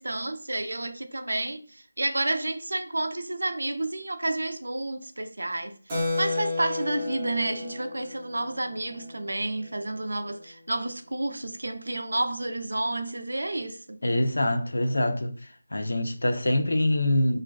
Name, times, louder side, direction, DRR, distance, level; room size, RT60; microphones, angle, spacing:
voice 1, 0.0-14.0, right 2 dB, 85° right, 0.4 m, -30 dB
Keyboard (musical), 5.9-10.0, left 3 dB, 20° right, 0.6 m, -33 dB
voice 2, 14.0-15.3 15.7-17.4, left 1 dB, 80° left, 0.5 m, -24 dB
2.4 x 2.3 x 2.3 m
figure-of-eight pair, 170°, 0 cm